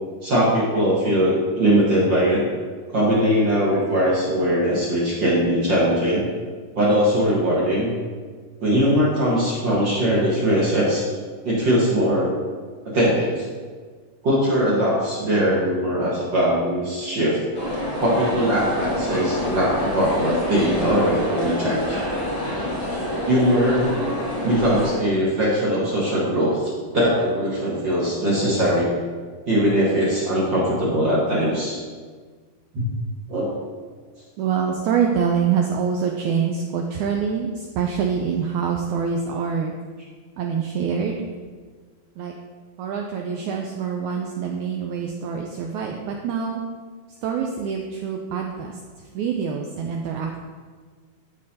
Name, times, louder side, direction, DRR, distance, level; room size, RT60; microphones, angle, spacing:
voice 1, 0.2-2.4 2.9-6.2 6.7-7.9 8.6-11.0 11.4-12.3 12.8-13.5 14.2-17.4 18.0-22.0 23.3-23.9 24.4-28.9 29.5-31.8 32.7-32.9 33.3-33.5, equal, 50° right, -6 dB, 1.5 m, -20 dB
sound 1, 17.5-24.9, left 1 dB, 20° left, 1.5 m, -27 dB
voice 2, 34.4-39.7 40.4-41.2 42.2-42.3 42.8-46.6 47.2-48.8 49.1-50.4, right 6 dB, 90° right, 2 dB, 1.7 m, -25 dB
13.0 x 5.3 x 2.8 m, 1.5 s
omnidirectional pair, 4.0 m